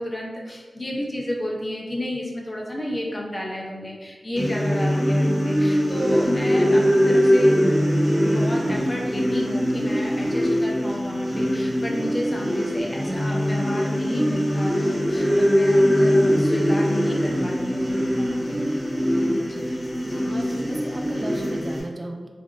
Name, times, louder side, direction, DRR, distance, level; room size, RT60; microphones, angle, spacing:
voice 1, 0.0-7.5 8.2-18.6 19.4-19.7, left 1 dB, 30° left, -2 dB, 0.6 m, -31 dB
sound 1, 4.4-21.8, equal, 10° left, 0.8 m, -22 dB
voice 2, 19.1-19.6 20.0-22.3, right 1 dB, 45° right, 3 dB, 0.4 m, -37 dB
3.2 x 2.5 x 2.5 m, 1.5 s
wide cardioid pair, 75°, 0 cm